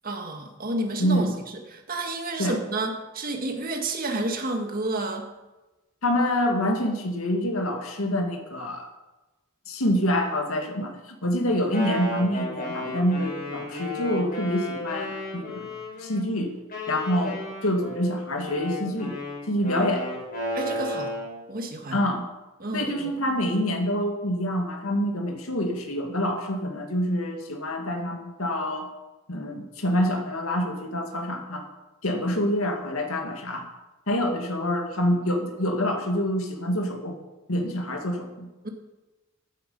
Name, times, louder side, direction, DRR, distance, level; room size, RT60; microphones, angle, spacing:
voice 1, 0.0-1.3 1.7-5.3 20.5-21.1 21.5-22.0 22.6-23.1 38.6-38.7, right 2 dB, 40° right, 3 dB, 1.8 m, -30 dB
voice 2, 1.0-1.4 2.4-2.6 6.0-8.9 9.7-15.7 16.0-16.5 16.9-19.2 19.5-20.1 21.9-22.3 22.7-28.9 29.3-31.7 32.0-33.7 34.1-37.2 37.5-38.5, equal, 80° left, 3 dB, 2.0 m, -26 dB
Wind instrument woodwind instrument, 11.5-16.2 16.7-21.4, left 2 dB, 40° left, 5.4 m, -33 dB
15.5 x 9.6 x 5.4 m, 1.1 s
head